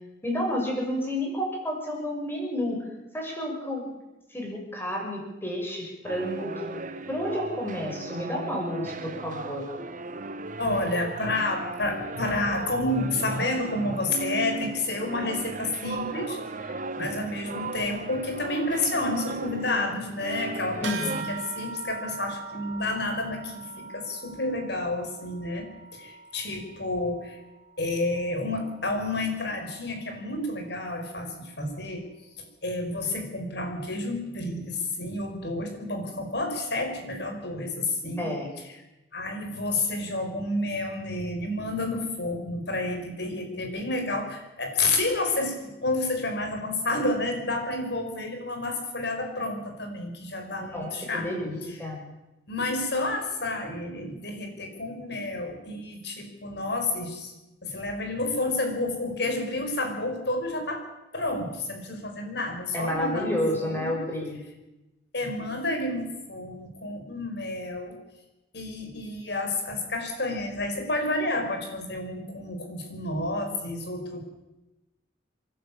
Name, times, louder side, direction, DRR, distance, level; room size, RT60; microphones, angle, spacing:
voice 1, 0.2-2.9 3.1-3.8 4.3-6.7 7.1-9.7 20.8-21.3 38.2-38.5 50.6-52.0 62.7-64.4, left 1 dB, 15° left, 0 dB, 6.5 m, -30 dB
sound 1, 6.0-21.2, right 3 dB, 45° right, 1.2 m, -36 dB
voice 2, 10.6-27.4 27.8-32.0 32.4-38.3 39.1-51.9 52.5-57.3 57.6-60.8 61.1-64.0 65.1-68.0 68.5-74.2, left 2 dB, 65° left, 5 dB, 5.0 m, -30 dB
sound 2, 20.8-30.6, right 5 dB, 80° right, 2.9 m, -42 dB
28.0 x 11.5 x 8.6 m, 0.99 s
head